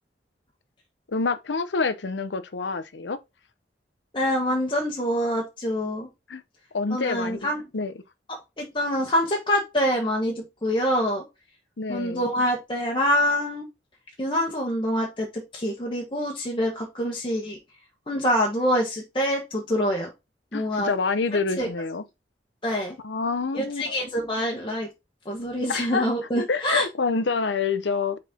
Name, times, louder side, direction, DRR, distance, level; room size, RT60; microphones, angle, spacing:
voice 1, 1.1-3.2 6.3-6.4 6.7-7.4 7.7-7.9 11.8-12.3 20.5-22.0 23.0-24.1 25.7-26.1 26.4-28.2, left 4 dB, 85° left, 0.7 m, -27 dB
voice 2, 4.1-6.1 6.9-7.6 8.6-11.2 11.9-13.7 14.2-17.6 18.1-20.1 20.5-20.9 21.6-21.7 22.6-23.0 23.5-24.9 25.2-26.9, equal, 30° left, 1.3 m, -25 dB
6.1 x 4.4 x 3.6 m
head